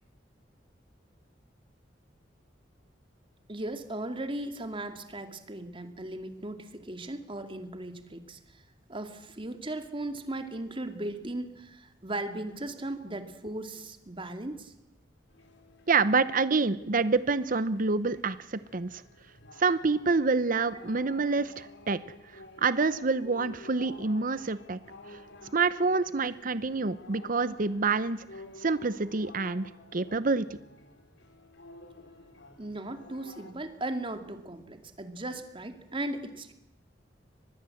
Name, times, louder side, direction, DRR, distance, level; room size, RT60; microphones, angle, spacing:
voice 1, 3.5-8.6 8.9-14.7 32.6-36.5, right 1 dB, 30° right, 7 dB, 2.4 m, -37 dB
sound 1, 15.3-33.5, left 2 dB, 75° left, 2.8 m, -51 dB
voice 2, 15.9-18.9 19.6-22.0 22.6-24.8 25.5-28.2 28.6-30.5, right 4 dB, 50° right, 15 dB, 0.8 m, -27 dB
25.0 x 20.0 x 7.8 m, 0.86 s
head